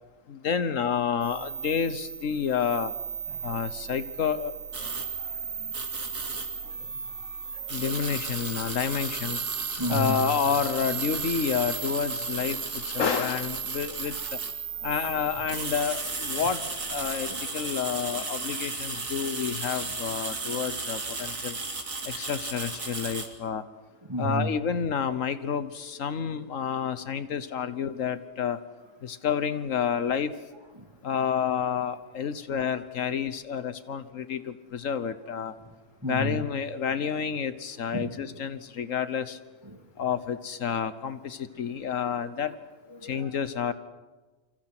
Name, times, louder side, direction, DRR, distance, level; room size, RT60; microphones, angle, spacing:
voice 1, 0.3-2.9 3.4-4.5 7.7-9.4 9.9-14.4 14.8-21.6 22.0-23.6 24.2-28.6 29.0-30.3 31.0-35.5 36.0-39.4 40.0-42.5 43.0-43.7, left 7 dB, 75° left, 1.4 m, -29 dB
sound 1, 1.2-17.1, right 7 dB, 60° right, 1.5 m, -36 dB
sound 2, 4.7-5.1 5.7-6.5 7.7-14.5 15.3-23.3, right 3 dB, 80° right, 3.0 m, -35 dB
voice 2, 4.8-6.3 6.6-7.1 7.4-8.0 9.8-10.2 14.1-14.4 14.7-14.9 15.4-15.6 16.3-16.6 17.3-18.3 19.8-20.0 24.0-24.6 30.7-31.0 35.6-35.7 36.0-36.4 37.9-38.2 39.6-40.1 42.4-42.5 42.9-43.4, equal, 20° right, 2.5 m, -36 dB
28.5 x 25.5 x 6.1 m
omnidirectional pair, 1.4 m